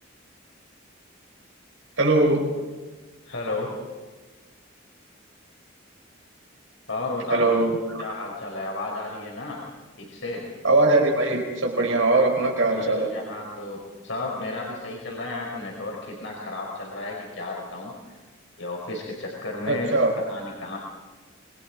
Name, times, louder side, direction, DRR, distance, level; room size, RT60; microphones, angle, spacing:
voice 1, 2.0-2.5 7.3-8.0 10.6-13.1 19.7-20.1, right 2 dB, 80° right, 1 dB, 4.9 m, -21 dB
voice 2, 3.2-3.7 6.9-7.6 8.0-9.6 10.0-10.5 12.7-17.9 18.6-19.9 20.3-20.8, left 2 dB, 70° left, -2 dB, 5.1 m, -33 dB
27.5 x 22.5 x 5.0 m, 1.3 s
head